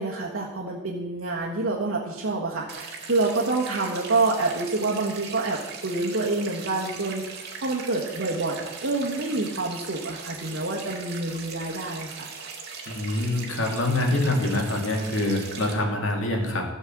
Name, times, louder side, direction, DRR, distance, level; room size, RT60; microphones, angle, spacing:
voice 1, 0.0-12.3, right 3 dB, 85° right, -3 dB, 1.5 m, -27 dB
sound 1, 2.7-15.7, right 5 dB, 55° right, 2.0 m, -39 dB
voice 2, 12.9-16.6, left 1 dB, 75° left, 1 dB, 2.4 m, -25 dB
14.5 x 5.4 x 7.6 m, 1.1 s
head